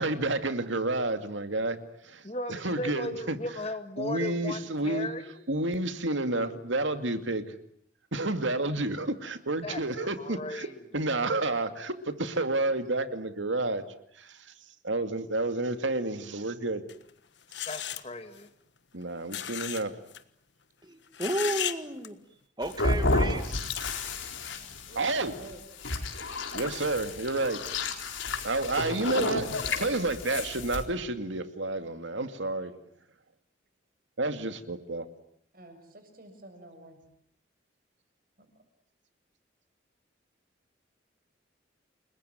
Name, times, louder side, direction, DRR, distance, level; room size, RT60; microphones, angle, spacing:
voice 1, 0.0-1.8 2.0-2.2 2.5-3.4 4.0-5.1 5.5-7.5 8.1-10.7 10.9-13.8 14.1-14.5 14.8-16.8 18.9-19.9 25.0-25.3 26.5-27.6 28.4-32.7 34.2-35.1, right 2 dB, 80° right, 9 dB, 2.3 m, -30 dB
voice 2, 2.2-5.4 9.6-9.8 10.2-10.8 17.7-18.5, left 1 dB, 30° left, 8 dB, 2.0 m, -36 dB
sound 1, 16.9-17.0 17.5-18.0 19.3-19.8 20.1-20.2 21.1-21.8 22.0-22.1, left 10 dB, 65° left, 1.5 m, -34 dB
voice 3, 20.8-22.2 22.6-23.6, right 1 dB, 20° right, 8 dB, 2.3 m, -32 dB
sound 2, 22.6-30.8, left 2 dB, 85° left, 4.1 m, -31 dB
voice 4, 24.9-25.6 35.5-37.0 38.4-38.5, right 1 dB, 50° right, 6 dB, 7.0 m, -50 dB
29.5 x 21.5 x 9.4 m, 0.70 s
head